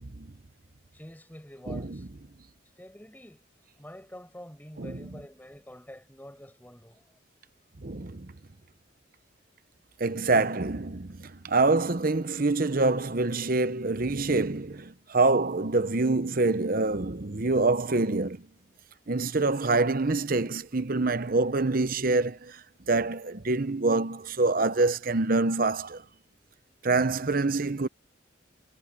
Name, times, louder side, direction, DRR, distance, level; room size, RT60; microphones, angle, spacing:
voice 1, 0.9-2.1 2.8-7.2, equal, 10° left, 5.6 m, -47 dB
voice 2, 1.7-2.0 4.8-5.1 7.8-8.3 10.0-18.4 19.1-26.0 26.8-27.9, right 3 dB, 45° right, 0.9 m, -26 dB
head